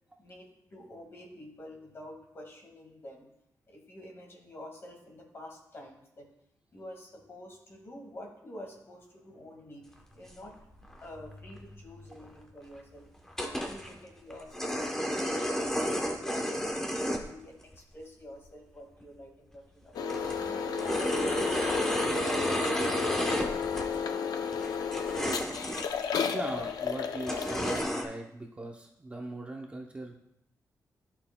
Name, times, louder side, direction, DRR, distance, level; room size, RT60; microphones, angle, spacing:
voice 1, 0.2-3.3 3.7-6.3 6.7-13.1 13.4-19.9 20.3-22.1 23.1-24.7, left 1 dB, 40° left, 1 dB, 1.8 m, -49 dB
sound 1, 10.3-10.4 10.8-11.0 11.3-11.4 11.6-11.7 12.2-12.3 13.3-13.9 14.3-17.2 17.6-17.7 19.0-19.1 19.5-19.6 20.0-24.0 24.5-26.0 26.5-26.6 27.3-28.0, equal, 5° left, 0.9 m, -32 dB
sound 2, 19.9-27.8, left 6 dB, 80° left, 0.5 m, -33 dB
voice 2, 26.3-30.2, right 2 dB, 20° right, 1 dB, 0.6 m, -40 dB
13.0 x 5.8 x 2.2 m, 0.79 s
wide cardioid pair, 155°, 7 cm